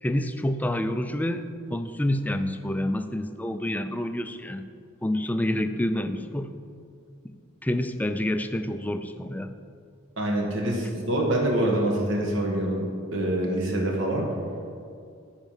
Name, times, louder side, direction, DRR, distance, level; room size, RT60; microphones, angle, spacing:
voice 1, 0.0-4.6 5.0-6.5 7.2-7.3 7.6-9.5, left 1 dB, 10° left, 9 dB, 0.3 m, -28 dB
voice 2, 10.2-14.3, right 1 dB, 65° right, -1 dB, 1.5 m, -25 dB
10.5 x 4.5 x 7.3 m, 2.3 s
head